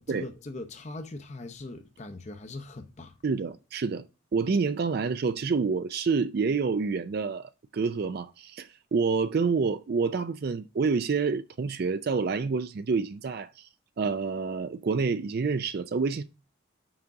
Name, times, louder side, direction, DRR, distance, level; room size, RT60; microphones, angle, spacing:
voice 1, 0.0-3.1, left 2 dB, 35° left, 0.6 m, -40 dB
voice 2, 3.2-4.0 4.3-13.7 14.0-16.2, right 4 dB, 50° right, 0.4 m, -28 dB
6.1 x 5.1 x 4.6 m
head